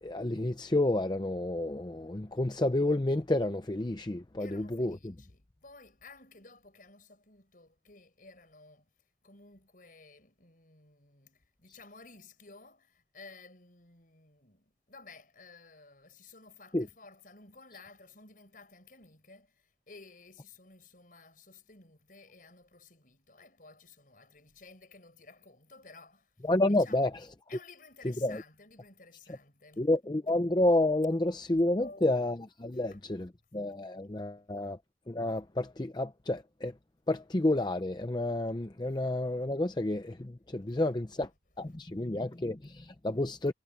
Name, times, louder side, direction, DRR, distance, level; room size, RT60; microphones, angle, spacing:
voice 1, 0.0-5.1 16.7-16.9 26.4-27.1 28.2-28.4 29.8-34.8 35.1-36.7 37.1-41.3 41.6-43.5, left 1 dB, 25° left, 0.6 m, -30 dB
voice 2, 4.4-8.9 9.2-27.1 27.5-29.9 31.8-32.2 32.7-33.1 34.4-34.5 40.7-40.9 41.7-41.9, left 3 dB, 50° left, 6.3 m, -55 dB
head